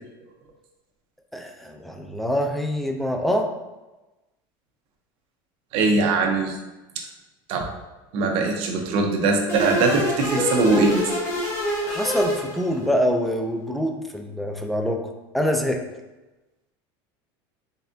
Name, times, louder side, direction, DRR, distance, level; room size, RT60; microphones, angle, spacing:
voice 1, 1.3-3.5 11.8-15.0 15.3-15.8, equal, ahead, 3 dB, 0.3 m, -25 dB
voice 2, 5.7-6.6 7.5-7.6 8.1-11.0, right 3 dB, 50° right, 2 dB, 0.7 m, -21 dB
sound 1, 9.5-13.1, left 1 dB, 25° left, 1.0 m, -26 dB
4.1 x 3.3 x 2.6 m, 1.1 s
supercardioid pair, 150°, 12 cm